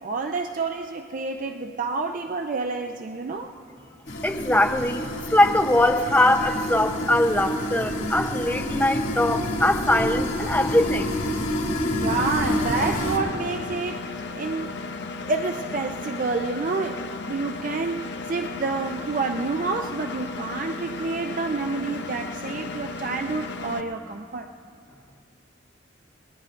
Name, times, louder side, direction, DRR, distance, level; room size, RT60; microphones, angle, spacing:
voice 1, 0.0-3.5 12.0-14.8 15.3-17.0 17.3-24.5, right 3 dB, 45° right, 5 dB, 0.4 m, -29 dB
sound 1, 4.1-13.2, left 1 dB, 85° left, 2.5 m, -28 dB
voice 2, 4.2-11.2, left 1 dB, 10° left, 4 dB, 0.6 m, -22 dB
Engine, 12.1-23.8, left 3 dB, 60° left, 0.6 m, -35 dB
23.0 x 20.0 x 2.5 m, 2.4 s
head